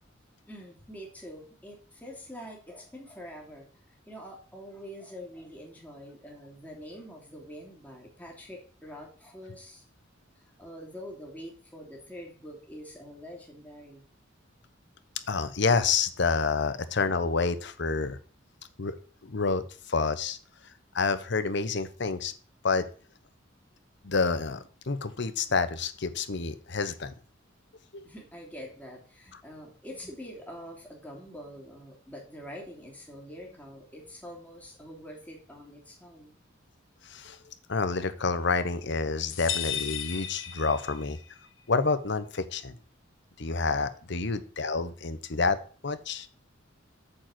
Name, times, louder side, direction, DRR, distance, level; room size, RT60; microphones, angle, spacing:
voice 1, 0.4-3.7 4.1-9.8 10.6-14.0 28.0-36.3, equal, 10° left, -1 dB, 2.8 m, -45 dB
voice 2, 15.3-18.2 18.8-19.0 19.2-20.4 20.9-22.3 22.6-22.9 24.0-27.1 27.9-28.0 37.1-37.4 37.7-41.2 41.7-42.7 43.4-45.6 45.8-46.3, left 4 dB, 60° left, 12 dB, 0.9 m, -28 dB
sound 1, 39.3-41.2, left 9 dB, 85° left, 1.2 m, -34 dB
8.7 x 4.9 x 7.7 m, 0.41 s
head